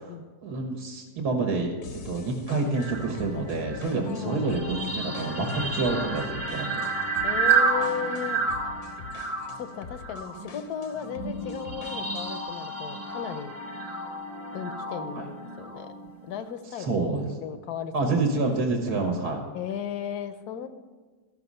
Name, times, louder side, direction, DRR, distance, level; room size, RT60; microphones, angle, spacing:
voice 1, 0.4-6.9 15.1-15.2 16.8-17.3 17.9-19.4, right 3 dB, 70° right, 2 dB, 1.7 m, -28 dB
sound 1, 1.8-12.5, left 6 dB, 55° left, 0.8 m, -45 dB
sound 2, 2.7-16.5, right 4 dB, 30° right, 1.0 m, -31 dB
voice 2, 4.1-4.5 7.2-8.4 9.6-13.5 14.5-15.9 16.3-16.9 17.3-18.1 19.5-20.7, left 8 dB, 75° left, 10 dB, 1.2 m, -35 dB
13.5 x 6.2 x 5.4 m, 1.4 s
omnidirectional pair, 1.7 m